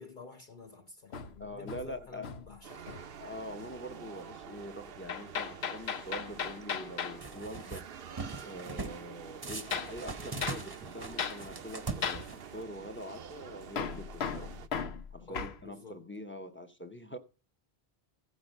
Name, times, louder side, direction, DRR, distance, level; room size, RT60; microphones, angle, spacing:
voice 1, 0.0-3.0 15.2-16.0, left 4 dB, 50° left, 1.0 m, -50 dB
Hammer, 1.1-2.6 2.9-3.2 5.1-7.2 9.7-10.0 10.4-10.6 11.2-11.4 12.0-12.3 13.8-15.6, left 7 dB, 85° left, 1.0 m, -36 dB
voice 2, 1.4-2.4 3.2-7.9 8.4-14.5 15.1-17.2, equal, 15° left, 0.7 m, -44 dB
sound 1, 2.6-14.7, right 7 dB, 65° right, 0.9 m, -48 dB
sound 2, 7.2-7.8 8.2-9.0 9.4-12.6, right 3 dB, 25° right, 0.8 m, -41 dB
15.0 x 6.2 x 5.3 m
omnidirectional pair, 1.1 m